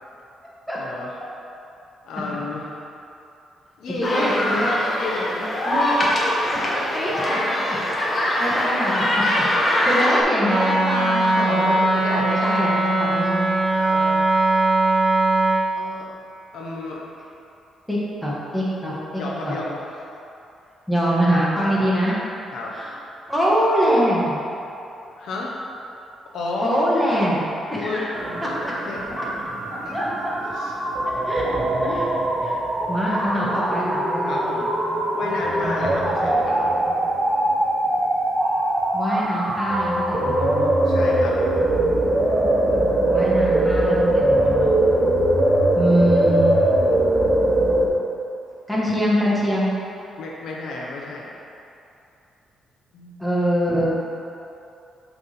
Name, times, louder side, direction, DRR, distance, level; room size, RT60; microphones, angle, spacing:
voice 1, 0.8-1.2 2.0-2.8 3.8-4.5 4.9-5.5 9.4-9.5 9.8-9.9 11.2-12.4 13.7-14.3 15.7-16.1 16.5-17.0 19.1-20.1 21.6-21.9 22.5-22.8 25.1-25.6 26.3-26.8 27.8-28.1 28.8-29.1 29.8-30.0 30.5-30.7 34.3-34.7 35.1-36.7 40.8-41.4 50.2-51.3 52.9-53.4, left 2 dB, 75° left, -3 dB, 1.0 m, -31 dB
sound 1, 4.0-10.2, left 1 dB, 30° left, 1.0 m, -22 dB
voice 2, 4.0-4.7 5.6-6.2 6.5-7.4 8.1-9.2 9.9-11.8 12.1-13.6 17.9-19.5 20.9-22.1 22.7-23.0 23.3-24.4 26.6-28.0 28.4-28.6 29.2-29.3 29.7-30.3 31.0-31.5 31.8-32.1 32.4-32.6 32.9-34.3 38.9-40.7 43.1-44.7 45.7-46.7 48.7-49.7 53.2-53.9, equal, ahead, -7 dB, 1.4 m, -24 dB
Wind instrument woodwind instrument, 10.4-15.6, right 2 dB, 65° right, 1.2 m, -20 dB
sound 2, 28.1-47.9, right 1 dB, 25° right, 0.9 m, -21 dB
6.0 x 3.6 x 5.7 m, 2.7 s
cardioid pair, 125°, 0 cm